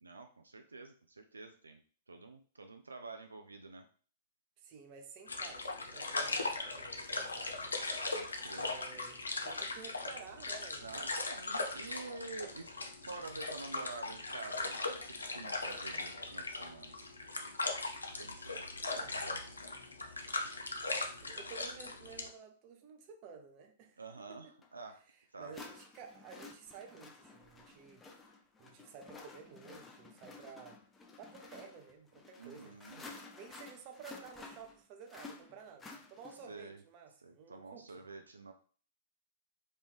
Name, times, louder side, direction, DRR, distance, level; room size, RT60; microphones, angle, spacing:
voice 1, 0.0-1.8 2.1-3.8 8.1-8.8 10.8-12.7 13.0-17.1 18.2-18.6 18.9-19.4 24.0-25.0 25.3-25.6 32.4-33.0 36.5-36.8 37.2-38.5, right 3 dB, 90° right, 0.3 m, -48 dB
voice 2, 4.6-7.6 8.5-11.1 12.4-12.5 18.8-19.2 21.0-24.5 25.4-28.1 28.6-30.8 31.2-37.9, right 6 dB, 45° right, 0.8 m, -53 dB
sound 1, 5.3-22.3, left 3 dB, 90° left, 0.5 m, -39 dB
sound 2, 24.6-24.7 25.5-36.6, left 3 dB, 15° left, 0.6 m, -53 dB
3.2 x 2.6 x 3.5 m
hypercardioid pair, 110°, 0 cm